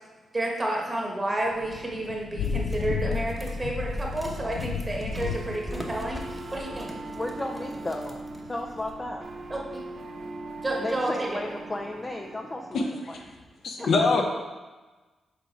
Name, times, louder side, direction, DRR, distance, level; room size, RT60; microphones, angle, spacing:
voice 1, 0.3-6.9 9.5-9.8 10.6-11.4 13.8-13.9, right 1 dB, 25° right, -1 dB, 1.2 m, -30 dB
Thunder / Rain, 1.4-10.9, left 6 dB, 85° left, 0.4 m, -36 dB
sound 1, 2.4-9.1, equal, 10° right, 0.9 m, -40 dB
sound 2, 5.2-13.2, right 3 dB, 55° right, 0.6 m, -41 dB
voice 2, 7.2-8.2 8.5-9.2 10.8-12.9 13.8-13.9, left 1 dB, 25° left, 1 dB, 0.4 m, -33 dB
voice 3, 12.7-13.2 13.6-14.3, left 3 dB, 70° left, 2 dB, 0.8 m, -24 dB
6.1 x 3.7 x 4.5 m, 1.3 s
cardioid pair, 80°, 0 cm